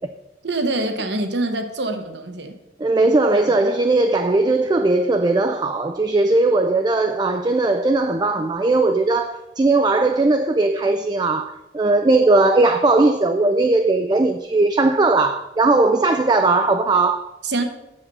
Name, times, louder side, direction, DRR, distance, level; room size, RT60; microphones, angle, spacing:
voice 1, 0.4-2.6 3.3-3.7 17.4-17.6, right 2 dB, 70° right, 1.0 m, -25 dB
voice 2, 2.8-17.3, right 2 dB, 25° right, 0.3 m, -18 dB
8.3 x 6.7 x 5.5 m
head